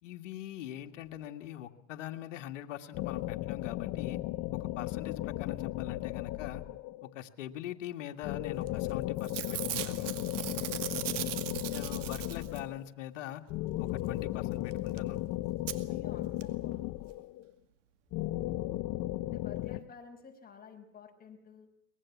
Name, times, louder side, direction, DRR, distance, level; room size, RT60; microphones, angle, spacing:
voice 1, 0.0-4.2 4.5-6.6 7.0-10.1 11.7-13.5 13.8-15.2, left 12 dB, 80° left, 5 dB, 1.9 m, -42 dB
sound 1, 2.9-7.1 8.2-12.9 13.5-17.5 18.1-19.8, left 16 dB, 50° left, 1.1 m, -35 dB
Packing tape duct tape / Tearing, 8.7-8.9 9.2-12.8 14.7-14.8 15.0-15.1 15.7-15.8 16.4-16.5 16.7-16.8, right 13 dB, 80° right, 2.3 m, -38 dB
voice 2, 10.6-11.0 15.9-16.8 19.3-21.7, left 5 dB, 25° left, 3 dB, 5.4 m, -52 dB
24.0 x 21.0 x 7.3 m, 0.83 s
hypercardioid pair, 100°, 37 cm